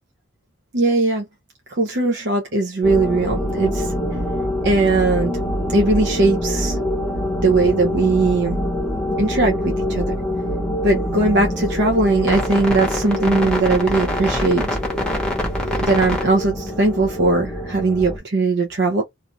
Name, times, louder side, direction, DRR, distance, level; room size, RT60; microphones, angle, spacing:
voice 1, 0.7-1.3 1.7-3.9 4.6-5.3 5.7-6.8 7.4-8.6 9.2-10.1 10.8-14.7 15.7-19.0, right 3 dB, 55° right, 0.6 m, -19 dB
sound 1, 2.8-18.2, left 1 dB, 5° left, 0.9 m, -24 dB
2.6 x 2.4 x 2.9 m
head